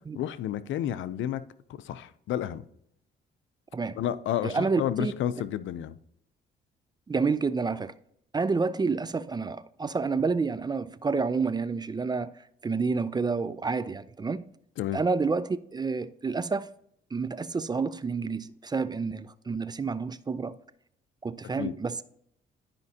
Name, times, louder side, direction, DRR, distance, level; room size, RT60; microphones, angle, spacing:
voice 1, 0.1-1.4 1.8-2.6 4.0-6.0 14.8-15.0 21.6-21.7, left 11 dB, 75° left, 0.5 m, -31 dB
voice 2, 4.4-5.1 7.1-7.9 8.3-12.3 12.6-14.5 14.9-16.7 17.1-20.6 21.2-22.0, right 4 dB, 20° right, 0.4 m, -29 dB
12.0 x 5.2 x 2.8 m
cardioid pair, 90°, 20 cm